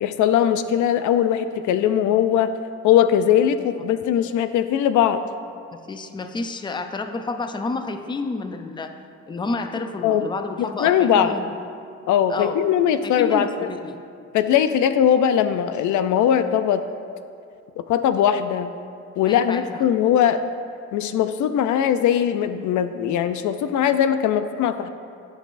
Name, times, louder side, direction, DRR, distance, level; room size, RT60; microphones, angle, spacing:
voice 1, 0.0-2.5 2.8-5.2 10.0-10.3 10.8-11.3 12.1-13.7 14.3-16.8 17.9-18.7 19.2-20.4 20.9-24.9, left 9 dB, 75° left, 11 dB, 0.4 m, -20 dB
voice 2, 5.7-9.0 9.3-11.5 12.3-12.6 13.0-14.0 19.3-19.8, left 3 dB, 15° left, 7 dB, 0.5 m, -30 dB
13.0 x 5.3 x 2.5 m, 2.4 s
cardioid pair, 90°, 30 cm